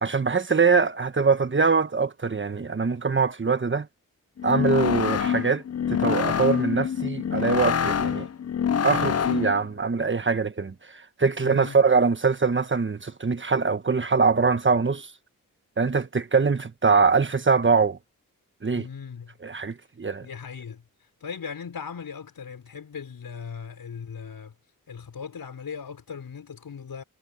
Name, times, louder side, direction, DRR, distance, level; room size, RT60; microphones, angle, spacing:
voice 1, 0.0-3.9 4.4-8.3 8.8-15.1 15.8-18.0 18.6-18.9 19.4-20.3, right 4 dB, 35° right, 1.4 m, -23 dB
sound 1, 4.4-9.7, left 8 dB, 45° left, 0.7 m, -26 dB
voice 2, 11.3-11.8 18.7-19.3 20.2-20.8 21.2-24.5 24.9-27.0, left 6 dB, 75° left, 5.8 m, -38 dB
cardioid pair, 80°, 35 cm